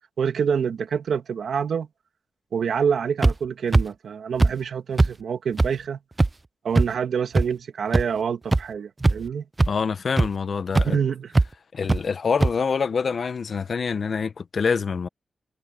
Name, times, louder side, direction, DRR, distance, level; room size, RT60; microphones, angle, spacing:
voice 1, 0.2-1.9 2.5-6.0 6.6-9.4 10.8-11.3, right 7 dB, 80° right, 2.4 m, -26 dB
sound 1, 3.2-3.3 3.7-3.8 4.4-4.5 5.0-5.1 5.6-5.7 6.2-6.3 6.8-6.9 7.4-7.5 7.9-8.0 8.5-8.6 9.0-9.3 9.6-9.7 10.2-10.3 10.8-10.9 11.3-11.5 11.9-12.0 12.4-12.5, right 2 dB, 25° right, 0.5 m, -18 dB
voice 2, 9.7-11.0 11.7-15.1, left 5 dB, 60° left, 1.0 m, -26 dB
cardioid pair, 90°, 0 cm